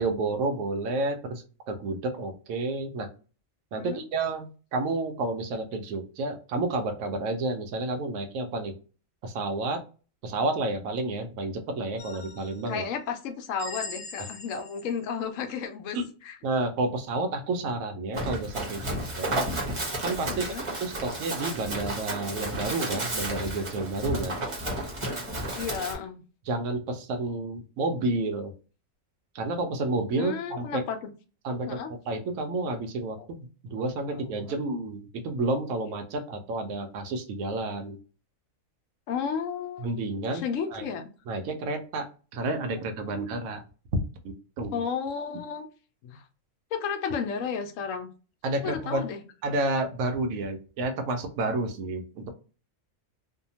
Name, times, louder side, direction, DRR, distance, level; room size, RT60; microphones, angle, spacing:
voice 1, 0.0-3.1 3.7-8.7 9.2-9.8 10.2-12.8 14.5-14.6 15.9-16.1 16.4-19.4 20.0-24.5 26.5-28.5 29.3-30.8 31.4-31.8 32.1-33.2 33.6-38.0 39.8-40.4 40.7-40.9 41.3-43.6 44.2-44.8 48.4-49.0 49.4-52.3, right 2 dB, 80° right, 6 dB, 1.0 m, -30 dB
sound 1, 12.0-12.8 13.6-15.0, left 4 dB, 55° left, 0.4 m, -41 dB
voice 2, 12.7-16.0 16.2-16.4 20.3-20.6 25.6-26.2 30.2-31.1 31.6-31.9 33.2-33.3 34.1-34.6 39.1-40.0 40.3-41.1 43.1-43.2 44.7-45.7 46.0-46.3 46.7-48.1 48.6-49.2, left 6 dB, 75° left, 6 dB, 0.9 m, -33 dB
Run, 18.1-26.0, right 1 dB, 30° right, 0.7 m, -32 dB
2.7 x 2.2 x 2.7 m, 0.35 s
omnidirectional pair, 1.4 m